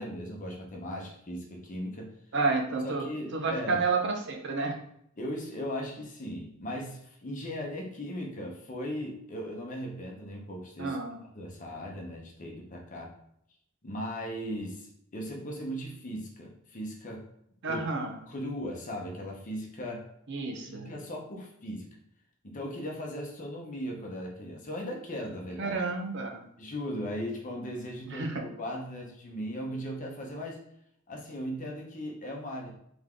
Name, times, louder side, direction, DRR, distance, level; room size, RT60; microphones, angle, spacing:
voice 1, 0.0-2.1 2.8-3.8 5.2-11.0 11.2-13.1 13.8-17.3 17.7-17.8 18.3-20.1 20.7-21.9 22.4-25.8 26.6-30.6 31.1-32.7, equal, 40° left, 1 dB, 0.8 m, -38 dB
voice 2, 2.3-3.1 3.3-4.8 10.8-11.2 17.6-18.2 20.3-20.9 25.6-26.5 28.1-28.4, right 4 dB, 55° right, 3 dB, 0.7 m, -30 dB
3.5 x 3.5 x 3.6 m, 0.73 s
head